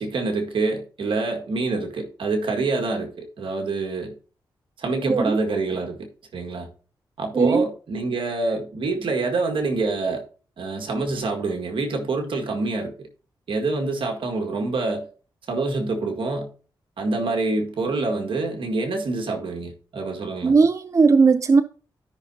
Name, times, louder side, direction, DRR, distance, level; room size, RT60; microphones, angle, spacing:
voice 1, 0.0-4.1 4.8-6.7 7.2-10.2 10.6-13.1 13.5-15.1 15.5-16.5 17.0-20.5, right 3 dB, 75° right, 1.9 m, -26 dB
voice 2, 7.3-7.7 20.4-21.6, right 4 dB, 35° right, 0.5 m, -17 dB
13.0 x 5.8 x 2.8 m
cardioid pair, 75°, 9 cm